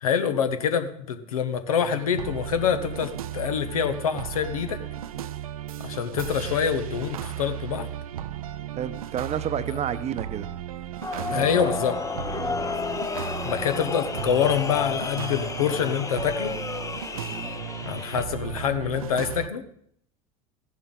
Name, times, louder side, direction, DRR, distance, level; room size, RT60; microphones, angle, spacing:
voice 1, 0.0-4.8 5.8-7.9 9.7-9.8 11.3-12.0 13.4-16.6 17.8-19.6, left 8 dB, 80° left, 9 dB, 1.1 m, -26 dB
sound 1, 1.8-19.5, right 10 dB, 85° right, 0.5 m, -35 dB
voice 2, 8.8-10.5 11.1-11.7 12.4-12.6 17.3-17.6, right 9 dB, 35° right, 14 dB, 0.8 m, -31 dB
sound 2, 11.0-18.2, left 5 dB, 20° left, 0.7 m, -32 dB
14.5 x 11.0 x 3.8 m, 0.68 s
hypercardioid pair, 80°, 18 cm